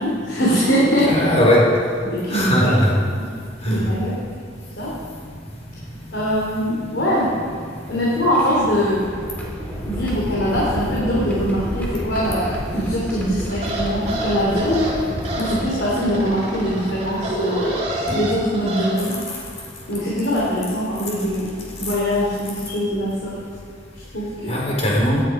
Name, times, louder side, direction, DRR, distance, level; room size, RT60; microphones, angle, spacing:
voice 1, 0.0-1.2 2.0-2.8 3.2-3.3 3.6-4.1 4.8-4.9 6.1-7.3 7.9-9.1 9.8-14.9 15.4-17.7 18.1-19.1 19.9-23.3 24.1-24.6, equal, 80° left, -6 dB, 3.2 m, -22 dB
voice 2, 1.1-1.7 2.3-2.9 3.6-3.9 18.1-18.2 24.5-25.2, equal, 40° left, -4 dB, 4.0 m, -18 dB
sound 1, 7.3-16.5 17.4-17.5 18.9-19.2 19.9-20.1 21.7-21.8 22.2-22.5, equal, 10° left, 2.7 m, -31 dB
sound 2, 13.5-18.9, right 1 dB, 40° right, 3.2 m, -28 dB
16.5 x 10.0 x 5.0 m, 2.1 s
head